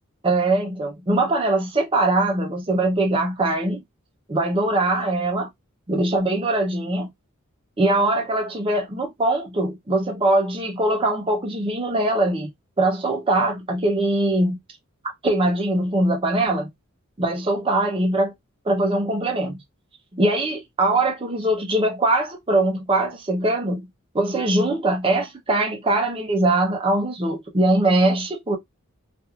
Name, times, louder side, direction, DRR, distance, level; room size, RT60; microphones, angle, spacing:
voice 1, 0.2-3.8 4.3-5.5 5.9-7.1 7.8-12.5 12.8-14.6 15.2-16.7 17.2-18.3 18.7-19.6 20.1-23.9 24.1-28.6, right 2 dB, 25° right, 0.6 m, -22 dB
2.9 x 2.5 x 2.3 m
head